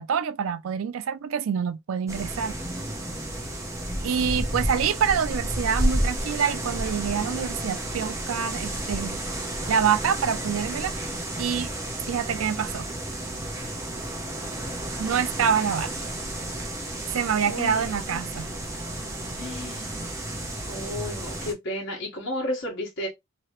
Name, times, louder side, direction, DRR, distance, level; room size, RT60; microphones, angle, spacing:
voice 1, 0.0-2.6 4.0-9.2 9.7-10.9 11.4-11.7 12.1-12.9 15.0-15.9 17.1-18.5, right 7 dB, 75° right, 0.4 m, -26 dB
sound 1, 2.1-21.5, right 1 dB, 15° right, 0.7 m, -31 dB
voice 2, 17.5-18.2 19.4-19.9 20.7-23.1, left 1 dB, 60° left, 1.3 m, -33 dB
3.0 x 2.8 x 2.9 m
head